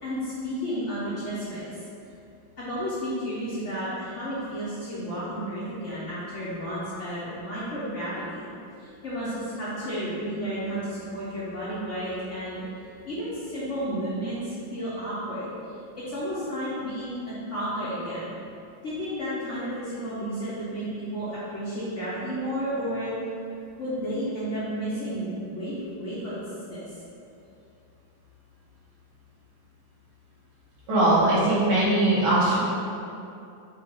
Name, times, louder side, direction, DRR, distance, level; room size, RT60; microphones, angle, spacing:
voice 1, 0.0-1.6 2.6-8.5 8.8-12.6 13.0-18.3 18.8-23.1 23.8-26.8, equal, 70° left, -11 dB, 0.7 m, -32 dB
voice 2, 30.9-32.6, right 1 dB, 90° right, -9 dB, 2.0 m, -20 dB
5.4 x 2.0 x 3.6 m, 2.6 s
omnidirectional pair, 2.2 m